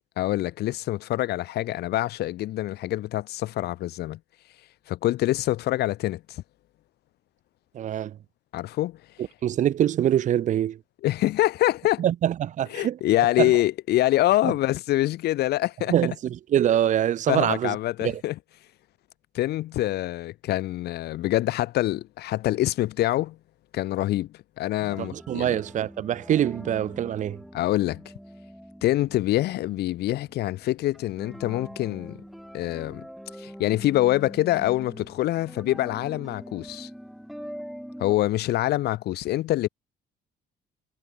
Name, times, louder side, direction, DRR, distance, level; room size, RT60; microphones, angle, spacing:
voice 1, 0.2-4.2 4.9-6.4 8.5-9.0 11.0-12.0 12.7-15.9 17.3-18.4 19.3-23.4 23.7-25.6 27.5-28.0 28.8-32.2 32.5-33.1 33.4-36.9 38.0-39.7, left 15 dB, 75° left, 2.4 m, -25 dB
voice 2, 7.7-8.2 9.4-10.8 12.0-13.0 13.4-13.5 14.4-14.5 15.9-17.8 18.0-18.2 25.0-27.4, right 11 dB, 45° right, 0.5 m, -24 dB
sound 1, 24.8-38.1, equal, ahead, 6.9 m, -43 dB
cardioid pair, 110°, 17 cm